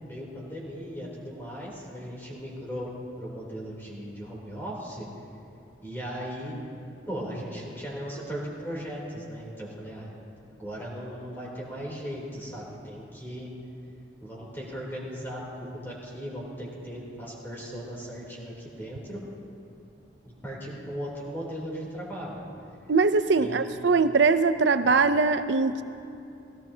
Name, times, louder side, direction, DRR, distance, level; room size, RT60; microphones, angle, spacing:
voice 1, 0.0-2.9 3.2-5.1 5.8-6.5 7.1-10.1 10.5-13.5 14.2-19.2 20.2-22.4 23.4-23.7 24.8-25.0, equal, 10° left, -5 dB, 3.2 m, -37 dB
voice 2, 22.9-25.8, right 4 dB, 80° right, 11 dB, 0.6 m, -22 dB
18.0 x 17.5 x 2.8 m, 2.6 s
head